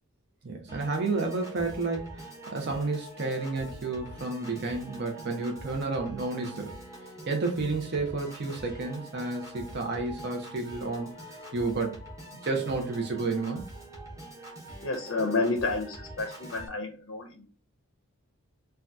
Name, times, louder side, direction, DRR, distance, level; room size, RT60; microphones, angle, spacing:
voice 1, 0.4-6.8 7.3-12.0 12.3-13.6, right 3 dB, 50° right, 0.6 m, -31 dB
Piano / Organ, 0.7-16.7, right 1 dB, 15° right, 0.7 m, -45 dB
voice 2, 14.8-17.5, left 3 dB, 55° left, 0.5 m, -30 dB
2.7 x 2.3 x 3.4 m
head